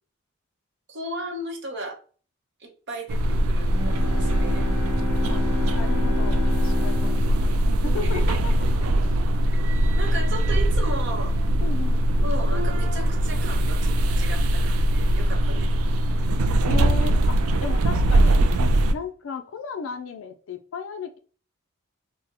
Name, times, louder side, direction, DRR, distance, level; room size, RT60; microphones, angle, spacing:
voice 1, 0.9-2.0 2.6-4.6 8.1-8.2 10.0-11.4 12.2-15.7, right 1 dB, 55° right, 0.7 m, -35 dB
sound 1, 3.1-18.9, right 1 dB, 85° right, 0.3 m, -21 dB
Bowed string instrument, 3.7-8.7, left 3 dB, 20° right, 0.7 m, -32 dB
voice 2, 5.7-9.1 11.6-12.0 16.7-18.4 18.9-21.2, left 5 dB, 70° left, 0.4 m, -35 dB
3.6 x 2.1 x 2.7 m
head